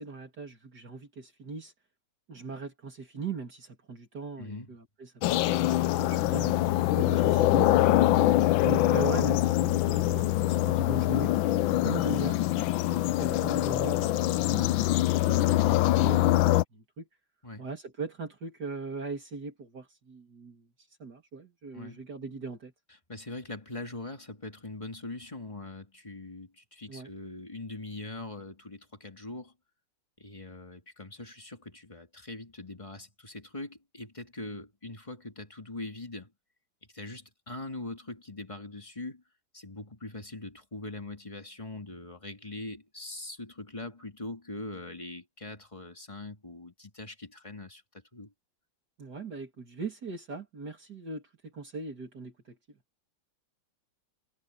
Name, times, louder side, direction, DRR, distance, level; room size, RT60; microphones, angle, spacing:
voice 1, 0.0-1.7 2.3-7.7 8.6-11.3 11.8-12.4 12.9-17.1 17.6-20.7 21.0-22.7 26.9-27.1 49.0-52.6, right 4 dB, 50° right, 3.3 m, -39 dB
voice 2, 4.4-4.7 17.4-17.7 21.7-22.0 22.9-29.5 30.2-36.3 36.9-39.2 39.5-48.3, left 2 dB, 15° left, 2.6 m, -42 dB
sound 1, 5.2-16.6, left 15 dB, 80° left, 1.3 m, -24 dB
omnidirectional pair, 2.2 m